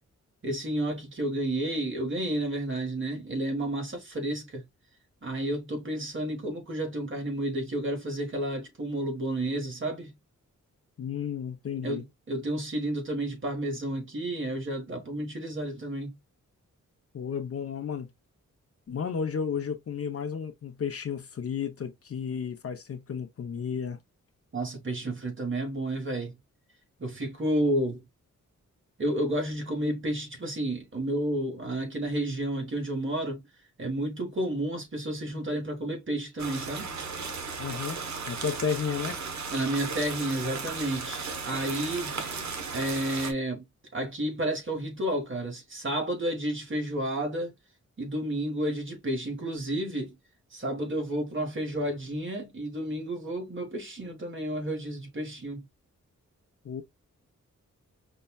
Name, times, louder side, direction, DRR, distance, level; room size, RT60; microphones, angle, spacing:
voice 1, 0.4-4.6 5.2-10.2 11.8-16.2 24.5-26.3 27.0-28.0 29.0-33.4 33.8-36.9 39.5-42.2 42.7-43.6 43.9-47.5 48.0-50.2 50.5-55.6, right 1 dB, 40° right, 1.4 m, -31 dB
voice 2, 11.0-12.0 17.1-18.1 18.9-24.0 37.6-38.0 38.3-39.2 56.6-56.8, left 7 dB, 50° left, 0.6 m, -32 dB
sound 1, 36.4-43.3, right 4 dB, 65° right, 1.0 m, -35 dB
5.4 x 2.2 x 2.2 m
wide cardioid pair, 125°, 30 cm